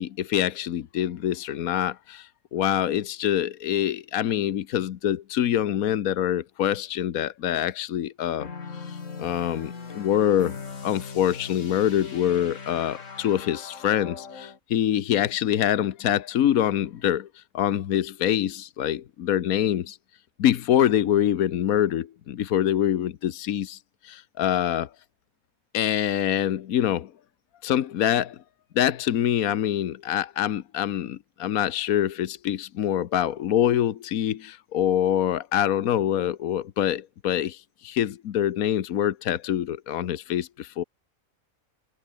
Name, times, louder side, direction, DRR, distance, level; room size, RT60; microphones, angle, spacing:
voice 1, 0.0-8.5 8.9-10.6 10.8-20.0 20.4-24.9 25.7-27.1 27.6-28.4 28.7-40.8, left 11 dB, 85° left, 1.3 m, -25 dB
sound 1, 8.4-14.6, left 5 dB, 60° left, 2.3 m, -39 dB
omnidirectional pair, 1.5 m